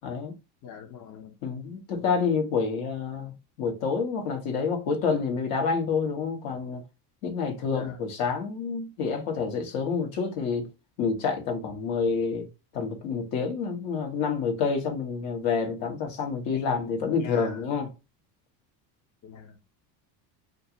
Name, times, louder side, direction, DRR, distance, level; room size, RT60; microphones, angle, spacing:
voice 1, 0.0-0.3 1.4-6.8 7.2-10.7 11.0-12.5 12.7-17.9, left 5 dB, 70° left, 1.2 m, -28 dB
voice 2, 0.6-1.4 1.9-2.1 7.7-8.0 16.5-16.9 17.2-17.7 19.2-19.6, left 8 dB, 40° left, 0.6 m, -42 dB
2.5 x 2.4 x 2.7 m
supercardioid pair, 110°, 47 cm